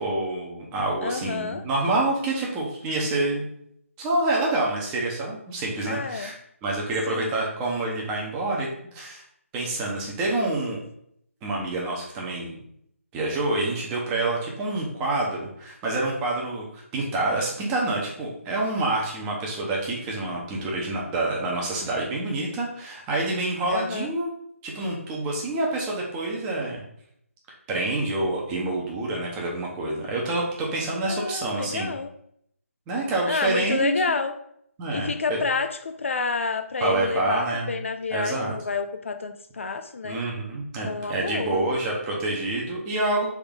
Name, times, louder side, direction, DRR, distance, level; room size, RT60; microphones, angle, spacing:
voice 1, 0.0-3.5 4.0-6.3 6.6-9.2 9.5-10.8 11.4-12.6 13.1-24.3 24.6-26.8 27.7-32.0 32.9-34.1 34.8-35.4 36.8-37.7 38.1-38.5 40.0-43.3, right 2 dB, 15° right, -2 dB, 0.7 m, -27 dB
voice 2, 1.0-1.6 5.9-6.3 7.1-7.4 23.7-24.1 31.1-32.1 33.2-34.3 34.9-40.2 40.8-41.6, left 4 dB, 60° left, 8 dB, 0.4 m, -29 dB
3.8 x 3.5 x 3.7 m, 0.71 s
figure-of-eight pair, 160°, 8 cm